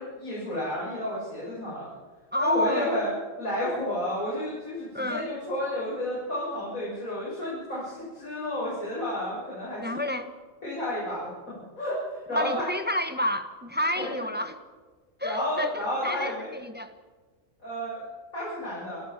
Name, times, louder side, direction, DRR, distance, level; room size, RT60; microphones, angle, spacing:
voice 1, 0.0-1.9 2.4-3.1 3.4-10.0 10.6-12.7 14.0-14.1 15.2-16.5 17.6-18.0 18.3-19.0, left 1 dB, 85° left, -8 dB, 8.1 m, -31 dB
voice 2, 2.3-2.9 4.9-5.3 9.8-10.3 12.3-14.6 15.2-16.9, left 1 dB, 10° right, 7 dB, 1.2 m, -30 dB
29.0 x 15.5 x 7.3 m, 1.3 s
omnidirectional pair, 1.4 m